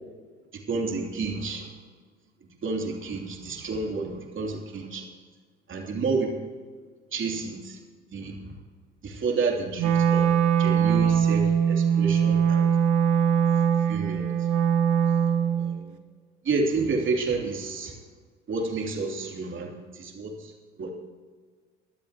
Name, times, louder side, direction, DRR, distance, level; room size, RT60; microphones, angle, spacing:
voice 1, 0.5-1.7 2.6-5.0 5.7-6.4 7.1-7.8 8.1-8.4 9.0-12.7 13.9-14.3 15.5-16.0 16.4-17.9 18.5-20.5 20.8-20.9, right 4 dB, 35° right, 1 dB, 3.1 m, -30 dB
Wind instrument woodwind instrument, 9.8-15.8, right 8 dB, 60° right, 1.3 m, -22 dB
22.5 x 13.0 x 3.0 m, 1.5 s
figure-of-eight pair, 60°, 34 cm